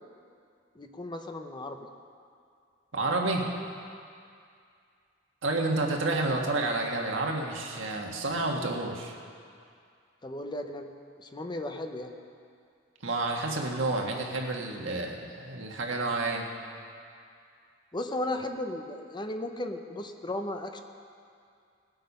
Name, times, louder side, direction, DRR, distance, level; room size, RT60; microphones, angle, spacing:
voice 1, 0.7-1.9 10.2-10.9 11.2-12.1 17.9-20.8, left 1 dB, 25° left, 6 dB, 0.7 m, -35 dB
voice 2, 2.9-3.5 5.4-9.1 13.0-16.5, right 2 dB, 85° right, 0 dB, 1.6 m, -30 dB
19.5 x 7.8 x 5.5 m, 2.3 s
head